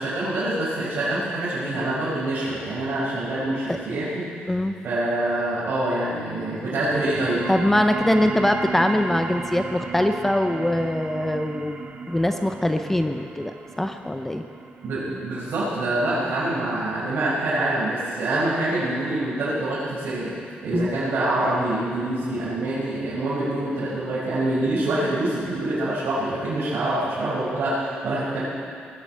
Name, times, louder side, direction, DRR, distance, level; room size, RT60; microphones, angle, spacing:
voice 1, 0.0-7.5 14.8-28.4, right 1 dB, 65° right, -10 dB, 5.2 m, -26 dB
sound 1, 6.7-17.8, right 4 dB, 40° right, 1.3 m, -35 dB
voice 2, 7.5-11.8 12.1-14.4 20.7-20.9, left 1 dB, 10° left, 6 dB, 0.5 m, -23 dB
20.5 x 7.7 x 8.2 m, 2.3 s
wide cardioid pair, 165°, 4 cm